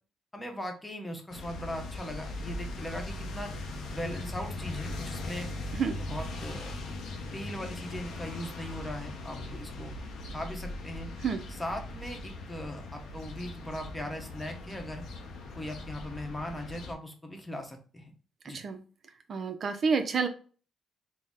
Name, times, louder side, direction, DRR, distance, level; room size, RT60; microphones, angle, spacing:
voice 1, 0.3-3.5 3.9-5.5 6.0-6.7 7.3-9.9 10.3-11.1 11.5-15.0 15.5-18.1 18.4-18.6, left 1 dB, 10° left, 4 dB, 0.8 m, -39 dB
sound 1, 1.3-16.9, left 2 dB, 75° left, 0.6 m, -40 dB
voice 2, 19.3-20.3, right 5 dB, 50° right, 7 dB, 0.4 m, -28 dB
3.9 x 2.0 x 3.5 m, 0.40 s
cardioid pair, 90°, 0 cm